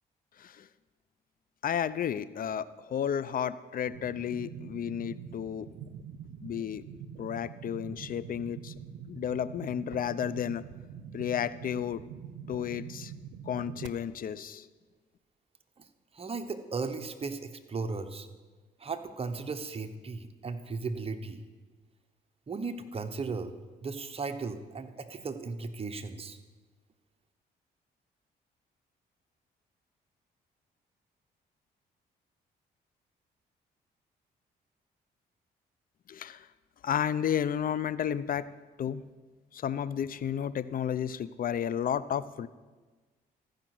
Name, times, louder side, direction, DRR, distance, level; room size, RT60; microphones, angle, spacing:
voice 1, 1.6-5.7 6.4-6.8 7.2-8.7 9.1-10.6 11.1-12.0 12.5-13.1 13.5-14.7 36.1-36.5 36.8-38.5 38.8-39.1 39.5-42.5, left 9 dB, 50° left, 16 dB, 0.5 m, -32 dB
sound 1, 3.9-13.9, right 8 dB, 85° right, 0.6 m, -45 dB
voice 2, 16.1-18.3 18.8-21.4 22.5-23.5 23.8-26.4, right 4 dB, 30° right, 7 dB, 1.0 m, -36 dB
14.5 x 5.1 x 6.1 m, 1.3 s
supercardioid pair, 65°, 18 cm